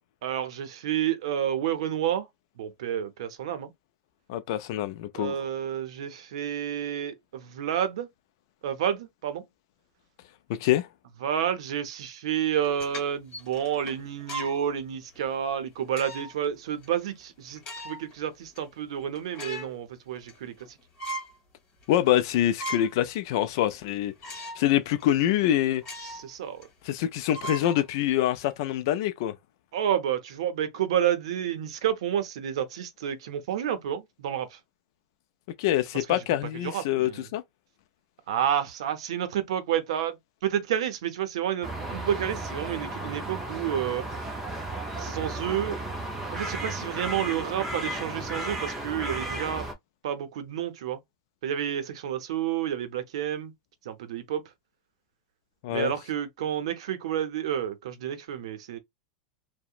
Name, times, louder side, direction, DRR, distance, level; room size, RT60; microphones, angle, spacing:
voice 1, 0.2-2.3 2.6-3.7 5.1-8.1 8.6-9.4 11.2-20.8 26.0-26.7 29.7-34.6 35.9-36.2 36.6-37.3 38.3-44.0 45.0-45.8 46.3-49.7 50.0-51.0 51.4-53.5 53.8-54.4 55.7-58.8, right 10 dB, 75° right, 0.6 m, -30 dB
voice 2, 4.3-5.4 10.6-10.9 21.9-24.1 24.6-25.8 26.9-29.3 35.6-37.4 55.6-55.9, left 12 dB, 50° left, 0.3 m, -25 dB
sound 1, 12.6-14.6 15.1-15.3 15.9-16.5 16.8-16.9 17.5-18.1 18.6-18.7 19.0-19.8 20.2-20.7 21.0-21.4 21.8-21.9 22.3-23.0 23.4-23.5 24.2-24.7 25.0-25.1 25.8-26.3 26.6-26.7 27.3-28.3, right 1 dB, 25° left, 1.4 m, -38 dB
sound 2, 41.6-49.7, right 2 dB, 10° right, 0.5 m, -34 dB
2.8 x 2.0 x 2.4 m
supercardioid pair, 175°, 3 cm